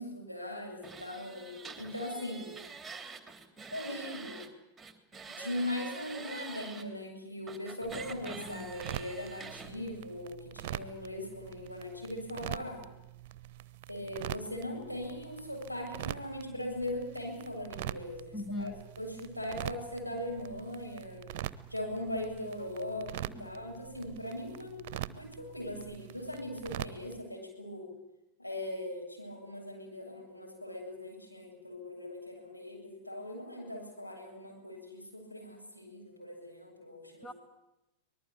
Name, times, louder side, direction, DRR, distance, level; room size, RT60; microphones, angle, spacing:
voice 1, 0.0-2.5 3.7-4.4 5.4-12.8 13.9-21.2 21.7-24.8 25.1-27.9 28.4-37.3, left 1 dB, 90° left, -1 dB, 7.6 m, -40 dB
sound 1, 0.8-4.5 4.8-6.8 7.5-9.7, right 5 dB, 10° right, 3.0 m, -46 dB
sound 2, 7.8-27.2, right 12 dB, 50° right, 0.9 m, -44 dB
voice 2, 18.3-18.9 23.3-23.5 37.2-37.3, left 2 dB, 20° left, 9 dB, 1.8 m, -40 dB
24.5 x 19.5 x 8.6 m, 0.92 s
figure-of-eight pair, 90°, 0 cm